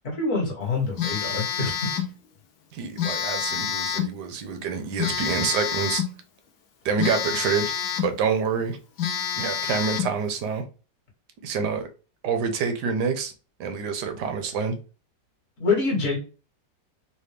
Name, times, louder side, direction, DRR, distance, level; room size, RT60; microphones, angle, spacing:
voice 1, 0.0-1.9 15.6-16.2, left 3 dB, 45° left, 1.5 m, -26 dB
Telephone, 1.0-2.2 3.0-4.2 5.0-6.2 7.0-8.2 8.6-8.7 9.0-10.2, left 8 dB, 65° left, 1.0 m, -28 dB
voice 2, 2.7-6.0 6.8-7.7 8.0-8.8 9.4-10.6 11.4-11.9 12.2-13.3 13.6-14.7, right 5 dB, 70° right, 1.2 m, -27 dB
4.1 x 2.1 x 3.2 m
omnidirectional pair, 2.0 m